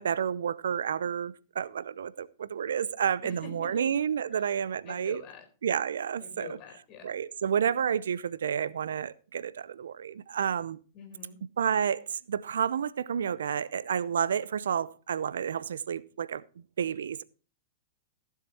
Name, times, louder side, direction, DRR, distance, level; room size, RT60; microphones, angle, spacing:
voice 1, 0.0-5.2 5.6-6.6 7.0-10.8 11.6-16.4 16.8-17.2, right 8 dB, 75° right, 0.5 m, -30 dB
voice 2, 3.2-4.5 4.9-5.5 6.2-7.2 10.9-11.4, left 5 dB, 40° left, 4.1 m, -47 dB
15.5 x 7.3 x 4.3 m
hypercardioid pair, 105°, 0 cm